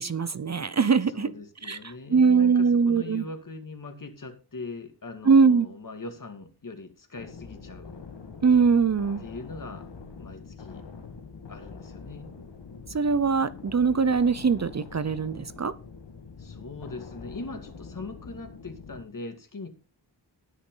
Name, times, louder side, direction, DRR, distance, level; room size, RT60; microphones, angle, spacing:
voice 1, 0.0-1.3 1.6-3.2 5.2-5.7 8.4-9.2 12.9-15.7, right 5 dB, 40° right, 15 dB, 0.7 m, -22 dB
voice 2, 1.1-7.9 9.2-9.9 10.2-10.8 11.5-12.3 16.4-19.7, left 3 dB, 50° left, 7 dB, 2.3 m, -41 dB
sound 1, 7.2-19.0, left 5 dB, 90° left, 1.8 m, -44 dB
19.0 x 6.4 x 3.9 m, 0.31 s
wide cardioid pair, 90°, 41 cm